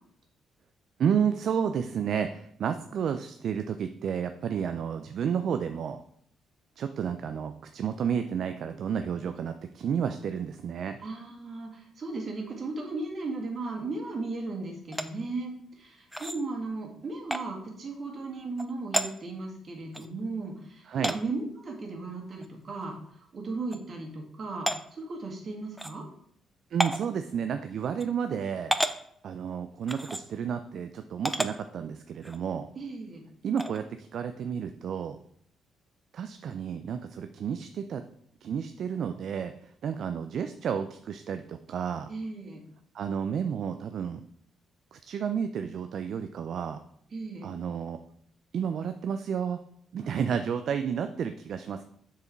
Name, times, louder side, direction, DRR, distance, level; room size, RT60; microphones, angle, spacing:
voice 1, 1.0-6.0 6.8-11.0 20.9-21.2 26.7-28.7 29.2-32.7 33.4-35.2 36.1-38.0 38.4-42.1 42.9-44.2 44.9-46.8 47.4-48.0 48.5-49.6 49.9-51.8, right 7 dB, 65° right, 8 dB, 0.4 m, -31 dB
voice 2, 11.0-23.0 23.3-26.0 32.8-33.2 42.1-42.6 47.1-47.5, right 3 dB, 45° right, 0 dB, 2.0 m, -36 dB
sound 1, 14.9-15.1 16.1-16.4 17.3-17.4 18.6-18.7 18.9-19.1 19.9-20.1 21.0-21.2 22.4-22.5 22.9-23.0 23.7-23.8 24.7-24.8 25.8-25.9 26.8-27.1 28.0-28.1 28.7-29.0 29.9-30.2 31.2-31.5 32.2-32.4 33.6-33.8, equal, 5° right, 0.5 m, -30 dB
6.8 x 4.8 x 4.5 m, 0.67 s
cardioid pair, 90°, 0 cm